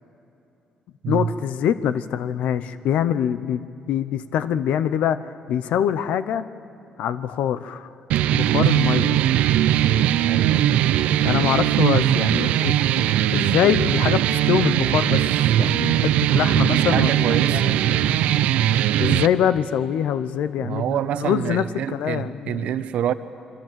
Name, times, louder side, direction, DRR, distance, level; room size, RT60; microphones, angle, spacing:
voice 1, 1.1-6.4 7.0-7.9 8.3-9.2 11.2-15.3 15.6-18.2 19.0-21.6 21.9-22.7, left 9 dB, 80° left, 13 dB, 0.8 m, -24 dB
sound 1, 8.1-19.3, right 12 dB, 90° right, 0.6 m, -20 dB
voice 2, 8.9-9.2 10.2-10.8 16.3-17.9 18.9-19.0 20.6-23.1, right 9 dB, 75° right, 11 dB, 1.1 m, -27 dB
27.0 x 22.5 x 7.6 m, 2.8 s
cardioid pair, 110°, 2 cm